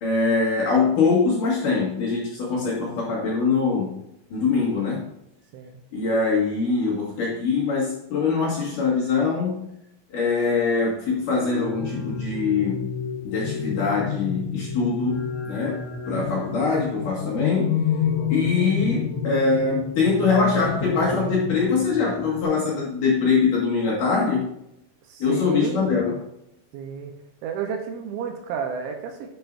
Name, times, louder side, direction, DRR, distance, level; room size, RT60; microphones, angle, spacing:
voice 1, 0.0-4.0 4.3-5.1 5.9-9.6 10.1-12.9 13.2-17.8 18.3-24.5 25.2-26.2, left 4 dB, 50° left, -5 dB, 2.8 m, -23 dB
sound 1, 11.3-22.4, left 6 dB, 90° left, 5.3 m, -29 dB
voice 2, 15.8-16.2 18.1-18.4 25.1-25.9 26.7-27.1 27.4-29.3, right 7 dB, 75° right, 3 dB, 3.0 m, -32 dB
11.5 x 6.8 x 2.7 m, 0.79 s
omnidirectional pair, 5.8 m